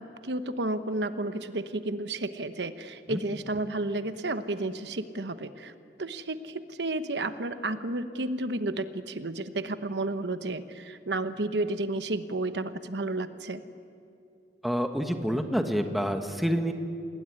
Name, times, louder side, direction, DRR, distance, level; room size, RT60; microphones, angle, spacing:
voice 1, 0.0-5.7 6.0-13.6, right 2 dB, 75° right, 11 dB, 1.0 m, -32 dB
voice 2, 14.6-16.7, equal, ahead, 5 dB, 1.5 m, -28 dB
27.0 x 20.5 x 9.9 m, 2.5 s
head